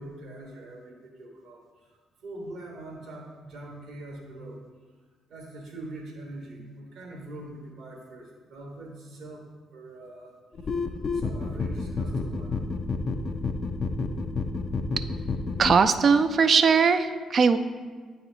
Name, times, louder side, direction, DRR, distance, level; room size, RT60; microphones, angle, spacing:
voice 1, 0.0-1.6 1.9-4.6 5.3-9.4 9.7-10.3 11.1-12.7, right 1 dB, 70° right, 0 dB, 1.2 m, -42 dB
sound 1, 10.5-15.8, left 3 dB, 55° left, 0.5 m, -30 dB
voice 2, 15.6-17.6, right 5 dB, 50° right, 11 dB, 0.4 m, -20 dB
9.3 x 4.2 x 2.7 m, 1.5 s
hypercardioid pair, 45°, 0 cm